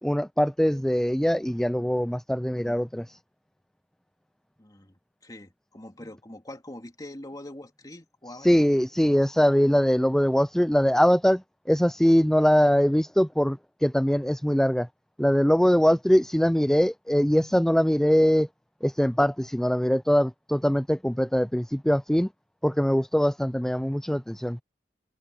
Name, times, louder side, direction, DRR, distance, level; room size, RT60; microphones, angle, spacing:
voice 1, 0.0-3.2 8.4-14.9 15.2-18.5 18.8-22.3 22.6-24.6, equal, 5° left, 0.4 m, -22 dB
voice 2, 4.6-5.0 5.2-8.5, left 1 dB, 20° left, 2.8 m, -43 dB
head